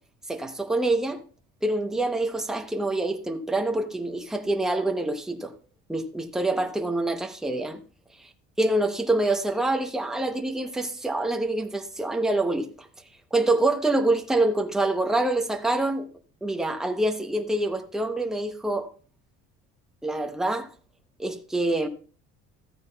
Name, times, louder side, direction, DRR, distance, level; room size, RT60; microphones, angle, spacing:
voice 1, 0.3-1.2 1.6-5.5 5.9-7.8 8.6-12.9 13.3-16.1 16.4-18.9 20.0-20.7 21.2-21.9, right 2 dB, ahead, 0.8 m, -26 dB
14.0 x 9.3 x 2.3 m
cardioid pair, 135°, 32 cm